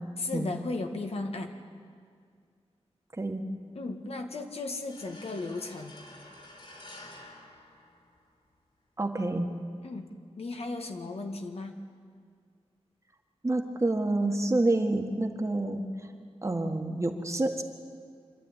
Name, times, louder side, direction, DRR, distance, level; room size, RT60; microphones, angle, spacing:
voice 1, 0.2-1.5 3.7-6.0 9.8-11.8, left 3 dB, 65° left, 5 dB, 1.7 m, -35 dB
sound 1, 4.9-8.5, left 1 dB, 50° left, 4.0 m, -50 dB
voice 2, 9.0-9.5 13.4-15.8 16.4-17.6, right 2 dB, 25° right, 4 dB, 1.7 m, -28 dB
26.0 x 12.0 x 9.9 m, 2.1 s
wide cardioid pair, 105°, 11 cm